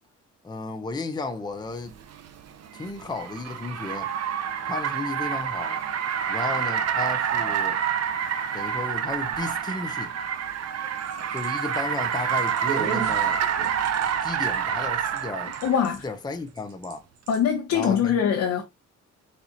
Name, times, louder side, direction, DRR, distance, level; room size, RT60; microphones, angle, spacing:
voice 1, 0.4-1.9 2.7-4.1 4.6-5.8 6.3-7.8 8.5-10.1 11.3-13.4 14.2-15.5 16.0-17.0 17.7-18.2, left 3 dB, 15° left, 0.7 m, -33 dB
Car, 1.9-15.8, right 8 dB, 55° right, 0.8 m, -27 dB
sound 1, 10.8-15.2 15.5-16.1 16.6-16.9 17.3-17.4, right 8 dB, 75° right, 1.2 m, -36 dB
voice 2, 15.6-16.0 17.3-18.6, left 8 dB, 70° left, 1.0 m, -23 dB
4.2 x 4.1 x 2.8 m
cardioid pair, 90°, 30 cm